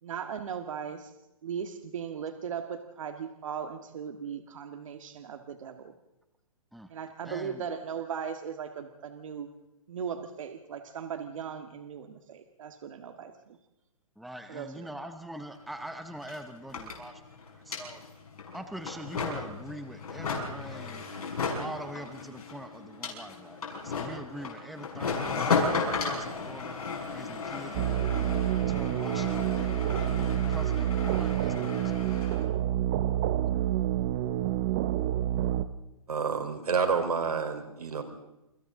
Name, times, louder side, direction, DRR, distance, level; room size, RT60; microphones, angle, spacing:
voice 1, 0.0-1.1 1.4-5.9 6.9-9.5 9.9-13.6 14.5-14.7, right 7 dB, 60° right, 7 dB, 1.7 m, -38 dB
voice 2, 7.2-7.7 14.2-17.2 17.5-18.0 18.5-21.0 21.6-32.2, right 1 dB, ahead, 8 dB, 0.6 m, -44 dB
sound 1, 15.5-15.6 15.8-32.4, left 4 dB, 75° left, 6.7 m, -35 dB
sound 2, 27.7-35.6, right 12 dB, 25° right, 0.9 m, -28 dB
voice 3, 36.1-38.0, right 5 dB, 85° right, 6 dB, 4.1 m, -29 dB
28.5 x 25.0 x 3.8 m, 0.89 s
hypercardioid pair, 160°, 19 cm